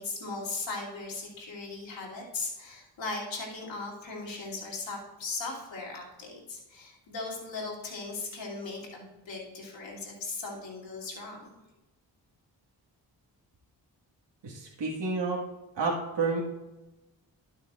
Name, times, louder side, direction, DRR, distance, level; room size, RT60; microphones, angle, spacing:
voice 1, 0.0-11.5, left 3 dB, 85° left, -4 dB, 2.8 m, -38 dB
voice 2, 14.4-15.4 15.8-16.4, right 4 dB, 70° right, -3 dB, 1.8 m, -30 dB
12.5 x 6.5 x 2.4 m, 1.0 s
cardioid pair, 50°, 44 cm